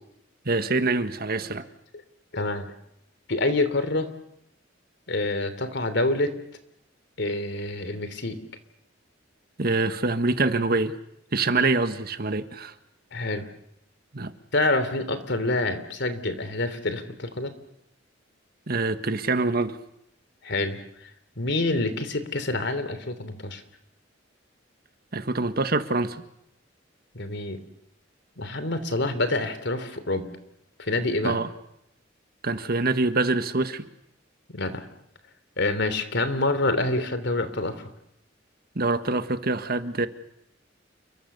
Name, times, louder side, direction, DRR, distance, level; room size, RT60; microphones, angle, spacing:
voice 1, 0.4-1.7 9.6-10.9 11.3-12.7 14.1-14.3 18.7-19.8 25.1-26.2 31.2-31.5 32.4-33.8 38.7-40.1, right 3 dB, 55° right, 10 dB, 1.6 m, -25 dB
voice 2, 2.3-2.7 3.3-4.1 5.1-6.4 7.2-8.4 13.1-13.5 14.5-17.5 20.4-20.8 21.4-23.6 27.1-27.6 28.4-30.3 30.8-31.4 34.5-34.8 35.6-37.8, left 2 dB, 65° left, 11 dB, 3.2 m, -27 dB
29.5 x 23.0 x 6.9 m, 0.78 s
head